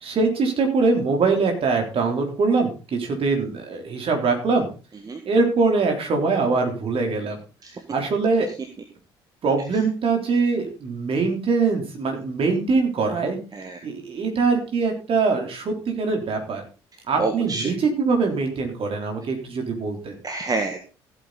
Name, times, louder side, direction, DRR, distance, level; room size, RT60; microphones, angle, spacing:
voice 1, 0.0-4.7 5.3-7.4 7.9-8.5 9.4-13.4 13.8-16.6 17.1-20.1, right 4 dB, 45° right, 3 dB, 3.6 m, -23 dB
voice 2, 17.2-17.7 20.2-20.9, right 3 dB, 30° right, 5 dB, 1.7 m, -27 dB
15.0 x 8.4 x 4.0 m, 0.34 s
figure-of-eight pair, 50°, 13 cm